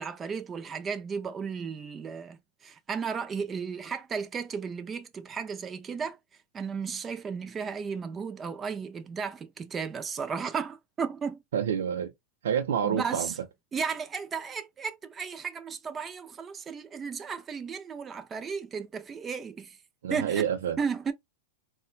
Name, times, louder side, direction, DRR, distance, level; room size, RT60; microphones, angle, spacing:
voice 1, 0.0-6.2 6.5-11.4 12.8-13.4 13.7-19.8 20.1-20.5 20.8-21.1, right 6 dB, 15° right, 0.4 m, -34 dB
voice 2, 11.5-12.1 12.4-13.3 20.0-20.8, right 8 dB, 85° right, 0.5 m, -28 dB
4.2 x 2.1 x 2.3 m
supercardioid pair, 150°, 0 cm